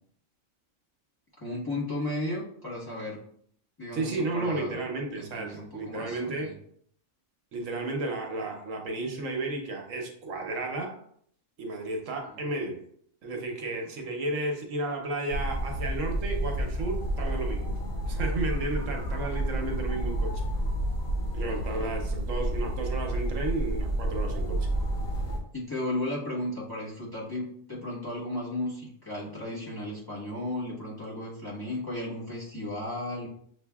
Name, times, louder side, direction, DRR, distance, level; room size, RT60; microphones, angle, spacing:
voice 1, 1.4-3.2 3.8-4.8 5.1-6.5 12.3-12.4 21.5-21.9 25.5-33.3, left 1 dB, 20° left, -7 dB, 1.2 m, -35 dB
voice 2, 3.9-6.5 7.5-11.0 11.6-12.8 13.2-17.7 18.1-20.4 21.3-24.6, right 2 dB, 75° right, 2 dB, 1.1 m, -33 dB
sound 1, 15.3-25.4, right 1 dB, 80° left, 1.4 m, -30 dB
6.4 x 2.6 x 2.3 m, 0.64 s
omnidirectional pair, 1.4 m